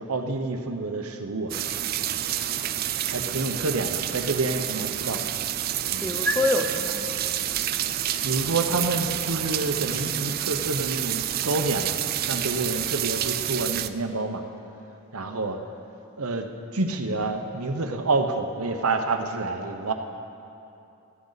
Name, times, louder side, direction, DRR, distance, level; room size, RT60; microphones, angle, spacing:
voice 1, 0.0-1.5 3.1-5.2 5.9-6.1 8.2-12.0 12.2-14.4 15.1-15.6 16.2-19.9, right 3 dB, 85° right, 6 dB, 1.0 m, -28 dB
sound 1, 1.5-13.9, right 11 dB, 45° right, 0.4 m, -29 dB
voice 2, 6.0-7.0, left 1 dB, 5° left, 5 dB, 0.7 m, -25 dB
17.0 x 13.5 x 4.1 m, 2.7 s
head